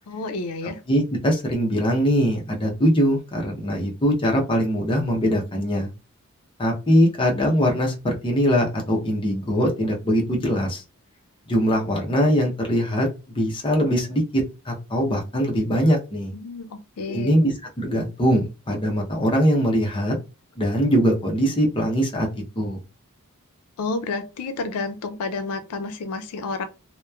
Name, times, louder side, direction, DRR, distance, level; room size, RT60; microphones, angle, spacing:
voice 1, 0.1-0.8 16.3-17.4 23.8-26.7, left 3 dB, 90° left, 0.4 m, -30 dB
voice 2, 0.9-5.9 6.6-10.8 11.5-13.1 13.3-16.3 17.1-17.5 17.8-20.2 20.6-22.3 22.6-22.8, equal, 25° left, 0.6 m, -22 dB
2.9 x 2.1 x 2.2 m
head